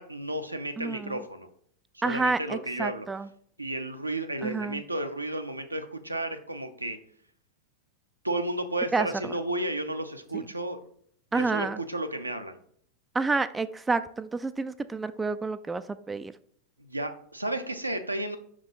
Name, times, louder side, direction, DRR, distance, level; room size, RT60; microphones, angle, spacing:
voice 1, 0.0-1.5 2.0-3.1 3.6-7.0 8.2-10.8 11.3-12.6 16.8-18.4, right 1 dB, 85° right, 6 dB, 0.7 m, -32 dB
voice 2, 0.8-1.2 2.0-3.3 4.4-4.8 8.9-9.3 10.3-10.5 11.3-11.8 13.1-16.3, right 3 dB, 10° right, 12 dB, 0.3 m, -29 dB
5.5 x 4.9 x 3.8 m, 0.63 s
figure-of-eight pair, 90°, 0 cm